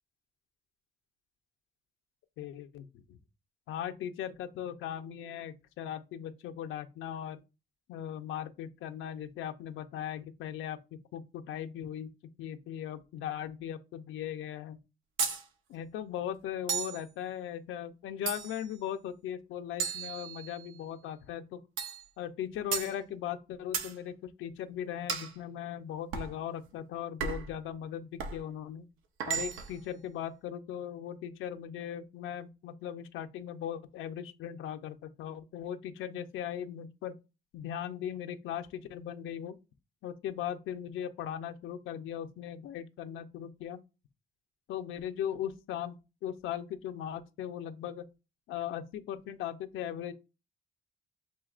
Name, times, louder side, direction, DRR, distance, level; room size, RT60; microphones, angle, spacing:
voice 1, 2.4-3.0 3.7-7.4 7.9-10.8 11.1-12.1 12.4-14.8 15.7-21.6 22.2-28.9 29.3-37.1 37.5-39.6 40.0-43.8 44.7-46.0 46.2-48.0 48.5-50.1, left 10 dB, 85° left, 0.6 m, -38 dB
sound 1, 15.2-15.4 16.7-17.0 18.3-18.7 19.8-20.7 21.8-22.0 22.7-22.9 23.7-23.9 25.1-25.3 26.1-26.3 27.2-27.5 28.2-28.4 29.2-29.8, right 6 dB, 85° right, 0.8 m, -34 dB
7.3 x 2.8 x 2.4 m
cardioid pair, 90°, 20 cm